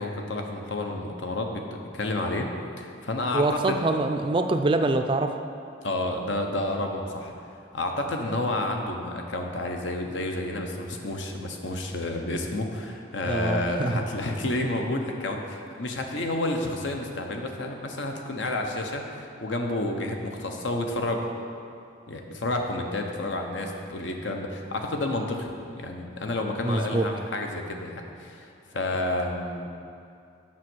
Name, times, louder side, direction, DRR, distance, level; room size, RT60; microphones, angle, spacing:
voice 1, 0.0-2.5 2.8-3.8 5.8-7.3 7.7-21.3 22.1-29.7, left 2 dB, 80° left, 3 dB, 0.9 m, -30 dB
voice 2, 3.3-5.3 13.2-13.9 26.6-27.1, right 2 dB, 25° right, 7 dB, 0.3 m, -25 dB
7.5 x 6.3 x 6.2 m, 2.5 s
head